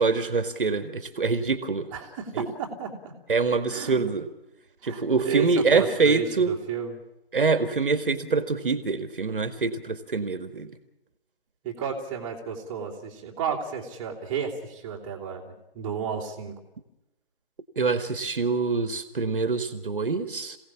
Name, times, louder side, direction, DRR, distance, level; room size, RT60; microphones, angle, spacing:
voice 1, 0.0-1.9 2.4-2.5 3.3-4.2 4.8-6.5 7.3-10.7 17.8-20.6, right 4 dB, 60° right, 9 dB, 2.0 m, -25 dB
voice 2, 1.9-3.1 3.7-4.0 4.8-7.0 11.6-16.6, right 7 dB, 15° right, -2 dB, 2.8 m, -32 dB
27.0 x 17.5 x 7.3 m, 0.93 s
figure-of-eight pair, 155°, 30 cm